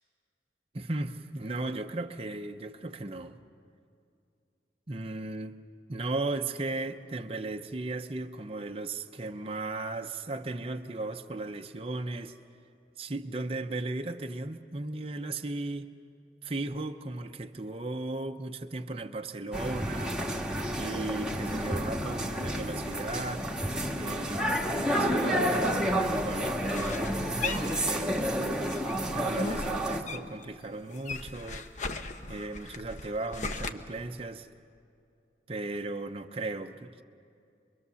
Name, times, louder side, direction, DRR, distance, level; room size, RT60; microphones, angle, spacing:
voice 1, 0.7-3.4 4.9-5.6 5.9-12.4 13.0-15.9 16.4-20.2 20.8-23.5 24.0-26.6 27.4-28.8 29.1-31.7 32.3-34.5 35.5-37.0, right 2 dB, 30° right, 5 dB, 0.7 m, -36 dB
sound 1, 19.5-30.0, equal, 5° right, 1.4 m, -30 dB
sound 2, 26.3-28.3 28.6-30.5 30.7-33.7, left 3 dB, 40° left, 0.9 m, -38 dB
25.5 x 22.5 x 7.0 m, 2.5 s
head